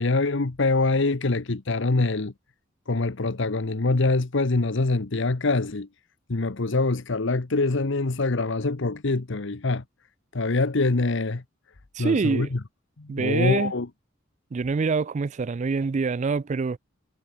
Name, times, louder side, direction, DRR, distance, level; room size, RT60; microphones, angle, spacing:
voice 1, 0.0-2.3 2.9-5.9 6.3-9.8 10.3-11.4 12.0-12.6 13.0-13.9, left 3 dB, 65° left, 1.0 m, -24 dB
voice 2, 11.9-12.5 13.1-13.7 14.5-16.8, right 4 dB, 35° right, 0.4 m, -25 dB
head